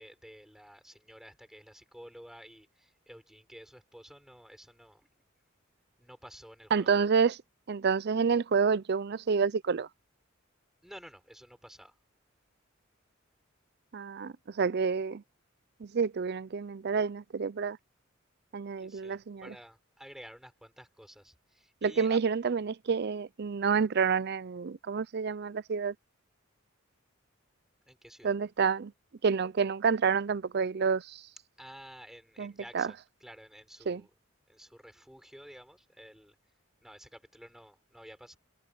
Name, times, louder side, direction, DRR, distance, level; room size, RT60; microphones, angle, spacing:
voice 1, 0.0-5.1 6.0-6.9 10.8-11.9 18.8-22.2 27.9-28.3 31.6-34.1 34.5-36.3 36.8-38.4, equal, ahead, 6.5 m, -52 dB
voice 2, 6.7-7.4 7.7-9.9 13.9-15.2 15.8-17.8 18.5-19.4 21.8-25.9 28.2-28.9 29.2-31.2 32.4-32.9 33.9-34.0, right 5 dB, 55° right, 0.5 m, -28 dB
head